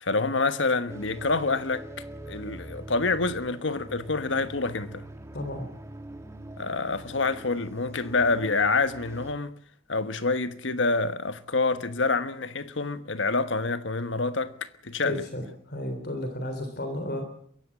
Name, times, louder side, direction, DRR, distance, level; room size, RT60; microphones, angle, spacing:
voice 1, 0.0-5.0 6.6-9.5 9.9-15.2, left 3 dB, 75° left, 1.3 m, -27 dB
sound 1, 0.9-9.3, right 1 dB, 15° right, 1.4 m, -43 dB
voice 2, 5.3-5.7 15.0-17.2, left 1 dB, 55° left, 3.6 m, -33 dB
22.5 x 16.5 x 7.4 m
head